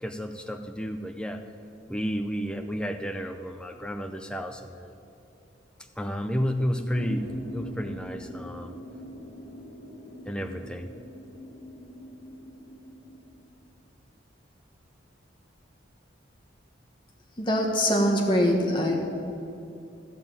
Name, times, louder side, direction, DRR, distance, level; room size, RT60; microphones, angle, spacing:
voice 1, 0.0-1.4 1.9-4.9 6.0-7.3 7.5-8.7 10.3-10.9, equal, 5° left, 6 dB, 0.6 m, -31 dB
sound 1, 6.9-13.5, left 1 dB, 45° left, 1.3 m, -42 dB
voice 2, 17.4-19.0, equal, 25° left, 1 dB, 1.5 m, -23 dB
13.5 x 5.9 x 8.8 m, 2.7 s
head